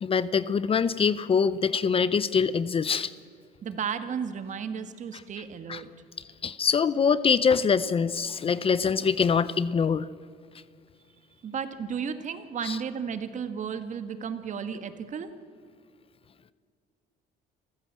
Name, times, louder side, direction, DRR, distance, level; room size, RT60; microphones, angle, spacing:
voice 1, 0.0-3.1 5.7-5.8 6.4-10.1 12.6-12.8, left 6 dB, 35° left, 17 dB, 0.7 m, -24 dB
voice 2, 3.6-5.9 11.4-15.3, right 7 dB, 45° right, 10 dB, 1.7 m, -33 dB
27.0 x 15.0 x 7.5 m, 2.1 s
cardioid pair, 110°, 17 cm